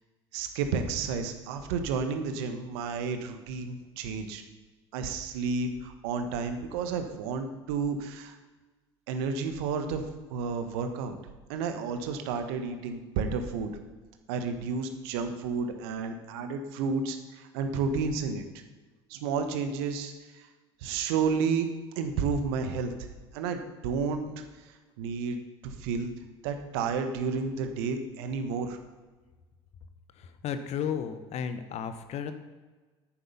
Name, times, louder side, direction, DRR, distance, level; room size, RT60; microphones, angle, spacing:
voice 1, 0.3-4.4 4.9-8.4 9.1-11.2 11.5-13.7 14.3-18.4 19.1-20.5 20.8-21.7 22.0-22.9 23.3-26.1 26.4-28.8, right 5 dB, 70° right, 7 dB, 1.3 m, -31 dB
voice 2, 30.2-32.3, left 8 dB, 50° left, 10 dB, 1.1 m, -34 dB
10.5 x 9.5 x 5.5 m, 1.3 s
hypercardioid pair, 65°, 14 cm